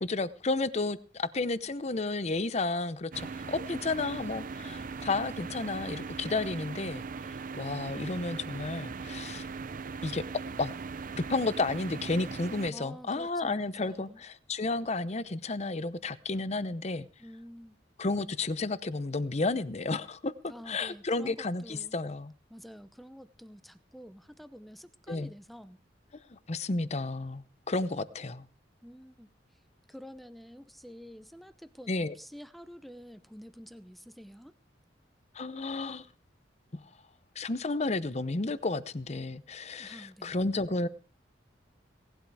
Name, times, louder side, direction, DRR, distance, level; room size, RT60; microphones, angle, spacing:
voice 1, 0.0-7.0 7.5-9.5 10.0-10.2 10.6-10.7 11.2-17.1 18.0-22.3 25.1-25.3 26.3-28.5 31.9-32.1 35.3-36.1 37.4-40.9, left 3 dB, 35° left, 15 dB, 0.7 m, -32 dB
sound 1, 3.1-12.7, right 4 dB, 50° right, 0.6 m, -39 dB
voice 2, 12.7-14.2 17.2-17.8 20.5-22.0 22.5-25.8 28.8-29.3 29.9-34.5 39.8-40.3, equal, ahead, 13 dB, 0.8 m, -49 dB
18.0 x 11.5 x 4.8 m, 0.41 s
head